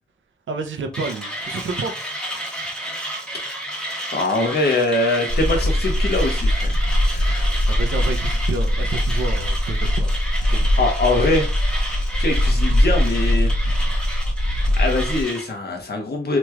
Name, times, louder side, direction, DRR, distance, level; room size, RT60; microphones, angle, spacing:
voice 1, 0.5-2.0 7.7-10.8, right 4 dB, 85° right, 0.6 m, -30 dB
Mechanisms, 0.9-15.5, right 1 dB, 5° left, 1.2 m, -31 dB
voice 2, 4.1-7.6 10.8-11.5 12.2-13.5 14.8-16.4, left 2 dB, 55° left, 1.0 m, -23 dB
sound 1, 5.3-15.2, left 1 dB, 30° left, 1.5 m, -21 dB
3.1 x 3.0 x 2.3 m
wide cardioid pair, 70°, 19 cm